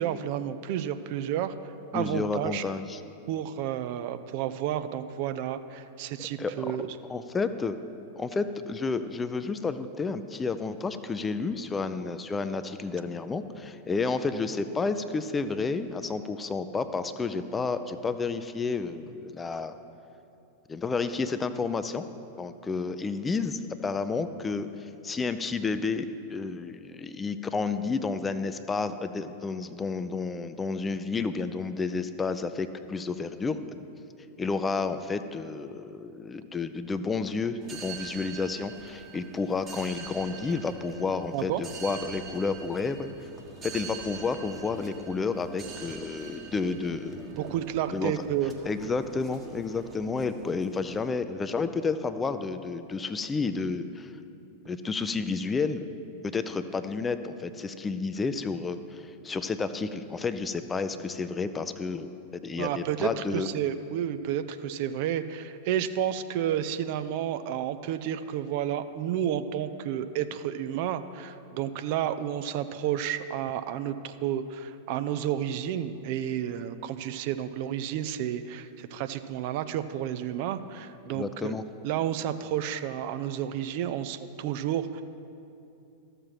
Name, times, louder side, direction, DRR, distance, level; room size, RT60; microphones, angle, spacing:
voice 1, 0.0-1.5 1.9-2.6 3.3-6.9 41.3-41.6 47.3-48.5 62.6-81.5 81.8-85.0, right 10 dB, 45° right, 11 dB, 0.4 m, -31 dB
voice 2, 1.9-3.0 6.4-6.7 7.1-7.8 8.2-19.8 20.7-22.0 22.4-33.8 34.4-43.3 43.6-47.2 47.9-48.2 48.6-54.1 54.7-55.9 56.2-62.1 62.4-63.5 81.1-81.6, left 4 dB, 15° left, 11 dB, 0.5 m, -31 dB
sound 1, 37.6-51.1, right 4 dB, 25° right, 1.3 m, -44 dB
13.0 x 6.7 x 5.8 m, 2.7 s
figure-of-eight pair, 90°, 0 cm